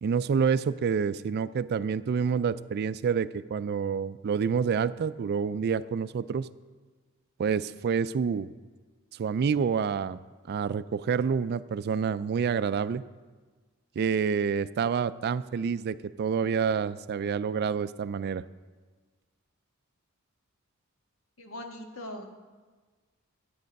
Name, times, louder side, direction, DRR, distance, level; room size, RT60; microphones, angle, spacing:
voice 1, 0.0-6.5 7.4-8.5 9.1-10.2 10.5-13.0 14.0-18.4, right 6 dB, 50° right, 15 dB, 0.3 m, -28 dB
voice 2, 21.4-22.3, left 1 dB, 75° left, 3 dB, 1.5 m, -40 dB
12.5 x 8.6 x 5.2 m, 1.4 s
head